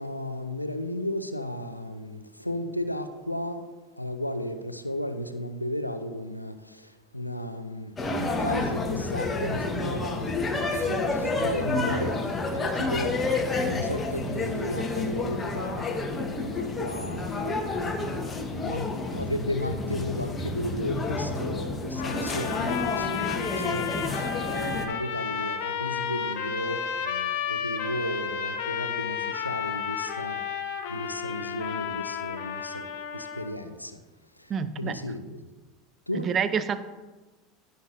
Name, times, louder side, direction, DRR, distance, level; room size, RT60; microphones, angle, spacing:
voice 1, 0.0-3.6 4.0-13.2 13.6-15.9 16.2-17.8 18.6-30.4 30.9-34.0 34.4-34.5 34.8-35.4 36.1-36.3, left 1 dB, 90° left, 0.6 m, -34 dB
sound 1, 8.0-24.9, left 3 dB, 20° left, 1.4 m, -29 dB
sound 2, 22.0-33.5, left 8 dB, 55° left, 1.0 m, -32 dB
voice 2, 34.5-35.0 36.1-36.8, right 6 dB, 30° right, 0.6 m, -28 dB
15.5 x 7.8 x 2.7 m
figure-of-eight pair, 75°, 0 cm